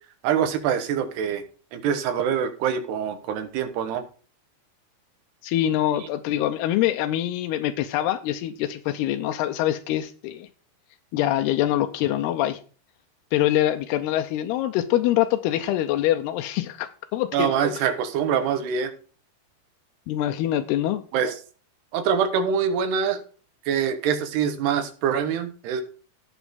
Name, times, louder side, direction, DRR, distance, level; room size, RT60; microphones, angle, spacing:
voice 1, 0.2-1.4 1.7-4.1 17.3-18.9 21.1-21.3 21.9-23.2 23.7-25.8, right 7 dB, 85° right, 8 dB, 3.4 m, -24 dB
voice 2, 5.4-10.5 11.1-12.6 13.3-17.5 20.1-21.0, left 13 dB, 90° left, 7 dB, 2.7 m, -24 dB
17.0 x 6.1 x 3.7 m, 0.38 s
omnidirectional pair, 4.6 m